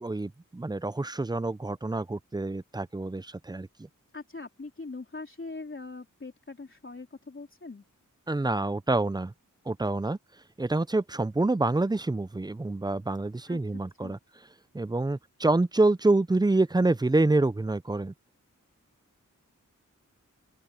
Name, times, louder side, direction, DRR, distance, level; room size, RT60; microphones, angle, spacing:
voice 1, 0.0-3.7 8.3-9.3 9.7-10.2 10.6-14.2 14.7-18.1, right 2 dB, 15° right, 0.5 m, -27 dB
voice 2, 4.1-7.8 13.5-14.2, left 3 dB, 40° left, 3.6 m, -42 dB
open air
wide cardioid pair, 60°, 32 cm